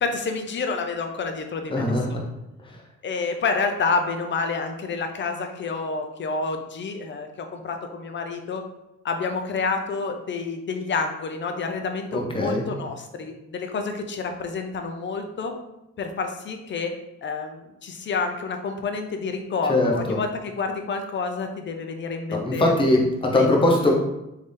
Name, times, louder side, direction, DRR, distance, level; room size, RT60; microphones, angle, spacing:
voice 1, 0.0-2.2 3.0-8.6 9.0-15.5 16.0-16.9 17.2-22.7 23.2-23.5, left 4 dB, 40° left, 5 dB, 0.6 m, -29 dB
voice 2, 1.7-2.2 2.6-2.8 12.1-12.6 19.7-20.2 22.4-23.9, left 1 dB, 15° left, -1 dB, 0.9 m, -21 dB
3.4 x 2.8 x 3.3 m, 0.92 s
cardioid pair, 90°, 30 cm